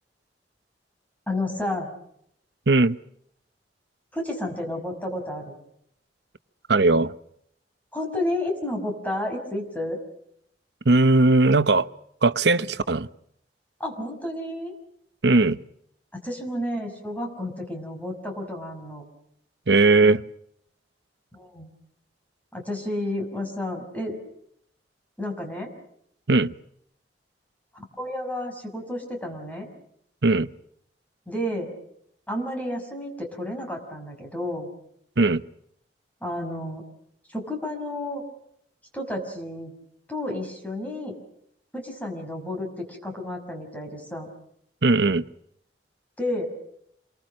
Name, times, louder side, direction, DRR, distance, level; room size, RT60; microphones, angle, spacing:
voice 1, 1.3-1.9 4.1-5.5 7.9-10.0 13.8-14.7 16.1-19.0 21.3-21.8 22.5-24.2 25.2-25.7 27.7-29.7 31.3-31.7 32.3-34.7 36.2-36.9 37.3-38.2 38.9-39.7 40.1-41.2 41.7-44.3 46.2-46.5, left 1 dB, 10° left, 6.1 m, -31 dB
voice 2, 6.7-7.1 10.8-11.9 12.2-13.1 15.2-15.6 19.7-20.2 26.3-26.5 30.2-30.5 35.2-35.4 44.8-45.2, right 3 dB, 70° right, 0.9 m, -18 dB
28.0 x 23.5 x 6.5 m
head